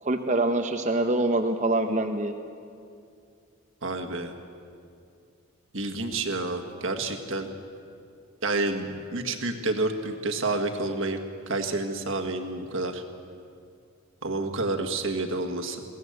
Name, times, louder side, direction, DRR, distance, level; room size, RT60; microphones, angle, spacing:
voice 1, 0.0-2.3, right 2 dB, 35° right, 5 dB, 0.8 m, -25 dB
voice 2, 3.8-4.3 5.7-7.5 8.4-11.2 11.5-13.0 14.2-15.8, right 2 dB, 60° right, 4 dB, 1.8 m, -29 dB
21.0 x 17.0 x 8.0 m, 2.4 s
head